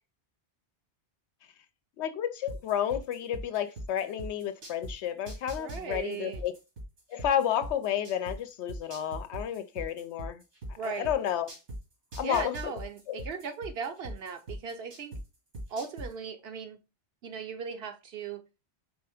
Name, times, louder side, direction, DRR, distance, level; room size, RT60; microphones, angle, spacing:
voice 1, 2.0-6.5 7.1-10.4 10.8-11.5 12.2-12.7 13.1-13.2, left 10 dB, 80° left, 0.9 m, -31 dB
sound 1, 2.5-4.9 5.3-8.4 8.7-11.8 12.1-15.2 15.5-16.1, right 1 dB, 85° right, 2.0 m, -39 dB
voice 2, 5.6-6.4 10.8-11.1 12.2-15.1 15.7-16.8 17.2-18.4, right 6 dB, 65° right, 0.9 m, -38 dB
4.4 x 3.3 x 3.4 m
omnidirectional pair, 1.1 m